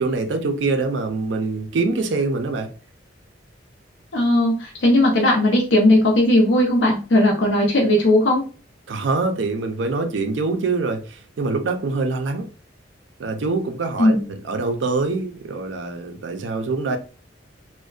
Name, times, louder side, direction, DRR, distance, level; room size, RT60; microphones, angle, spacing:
voice 1, 0.0-2.7 8.9-12.5 13.2-17.0, right 3 dB, 75° right, 0.4 m, -24 dB
voice 2, 4.1-8.4 14.0-14.2, left 1 dB, 80° left, 0.6 m, -17 dB
2.5 x 2.1 x 2.3 m
head